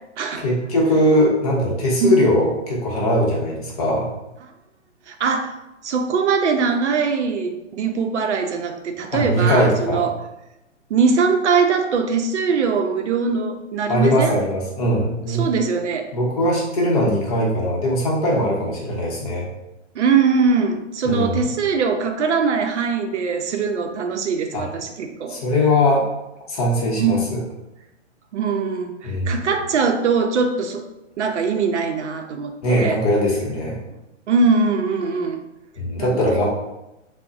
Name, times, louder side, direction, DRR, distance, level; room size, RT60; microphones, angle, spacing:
voice 1, 0.4-4.1 9.1-10.0 13.9-15.4 16.1-19.5 21.0-21.4 24.5-24.7 25.3-26.0 26.5-27.4 29.0-29.5 32.6-33.8 35.8-36.5, left 1 dB, 30° left, -3 dB, 0.7 m, -20 dB
voice 2, 5.1-5.5 5.8-10.2 10.9-14.4 15.3-16.1 19.9-25.4 27.0-27.3 28.3-30.8 31.2-33.0 34.3-35.4 36.0-36.2, right 5 dB, 70° right, 6 dB, 0.5 m, -21 dB
3.7 x 2.0 x 2.3 m, 0.93 s
hypercardioid pair, 155°, 37 cm